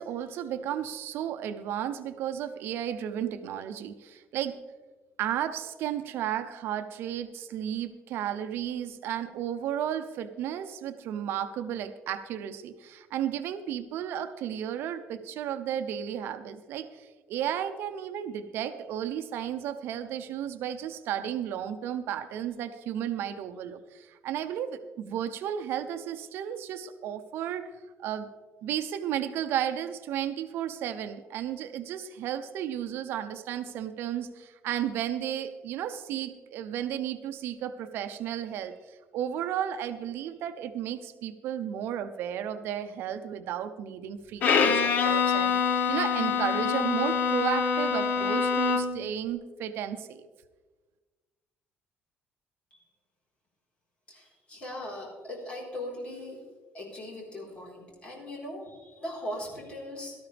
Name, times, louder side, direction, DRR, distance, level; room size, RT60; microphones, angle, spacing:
voice 1, 0.0-4.6 5.2-27.7 28.0-28.3 28.6-50.3, right 10 dB, 65° right, 9 dB, 0.7 m, -33 dB
Bowed string instrument, 44.4-49.1, left 6 dB, 45° left, 1.0 m, -25 dB
voice 2, 54.1-56.4 56.7-60.1, left 1 dB, 30° left, -3 dB, 4.3 m, -39 dB
17.5 x 13.0 x 3.4 m, 1.3 s
cardioid pair, 170°, 4 cm